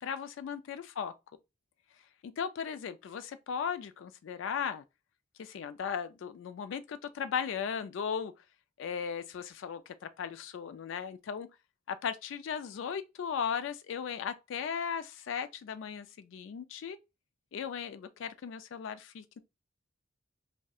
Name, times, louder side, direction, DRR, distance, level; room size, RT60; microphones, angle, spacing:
voice 1, 0.0-1.1 2.2-4.8 5.4-8.3 8.8-11.5 11.9-17.0 17.5-19.4, left 7 dB, 75° left, 0.3 m, -37 dB
2.7 x 2.0 x 2.3 m
head